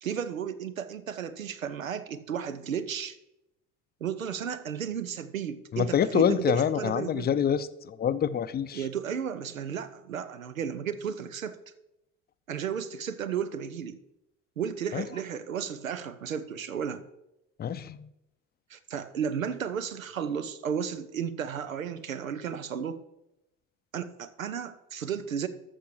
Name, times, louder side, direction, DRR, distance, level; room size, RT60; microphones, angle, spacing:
voice 1, 0.0-3.2 4.0-7.3 8.7-11.6 12.5-14.0 14.6-17.0 18.7-23.0 23.9-25.5, right 8 dB, 85° right, 13 dB, 0.7 m, -33 dB
voice 2, 5.7-8.8 14.9-15.0 17.6-18.1, left 8 dB, 25° left, 14 dB, 0.6 m, -26 dB
12.5 x 6.9 x 4.6 m, 0.89 s
figure-of-eight pair, 60°, 39 cm